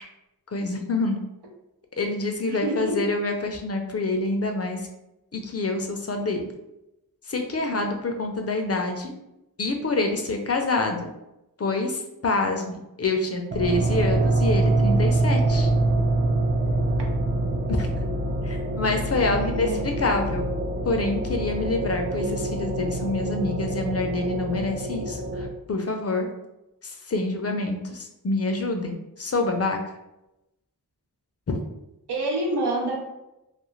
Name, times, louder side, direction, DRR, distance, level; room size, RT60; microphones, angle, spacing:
voice 1, 0.5-1.2 2.0-4.8 5.3-6.5 7.3-9.1 9.6-11.1 11.6-15.7 17.8-17.9 18.4-20.5 20.9-26.3 26.8-29.8, left 2 dB, 40° left, 4 dB, 0.5 m, -27 dB
voice 2, 2.5-3.0 19.3-19.9 32.1-33.0, right 2 dB, 85° right, -1 dB, 0.7 m, -27 dB
sound 1, 13.5-25.5, right 2 dB, 30° right, 0.4 m, -25 dB
2.4 x 2.4 x 3.0 m, 0.92 s
wide cardioid pair, 45°, 39 cm